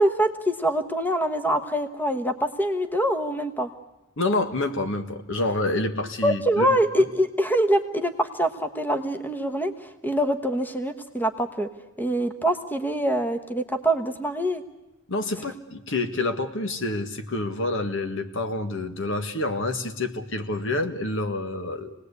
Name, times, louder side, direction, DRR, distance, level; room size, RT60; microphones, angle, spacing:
voice 1, 0.0-3.7 6.2-11.7 12.0-14.6, right 1 dB, 10° left, 8 dB, 1.1 m, -24 dB
voice 2, 4.2-6.7 15.1-22.0, left 2 dB, 65° left, 8 dB, 1.7 m, -28 dB
27.0 x 19.0 x 8.4 m, 0.97 s
head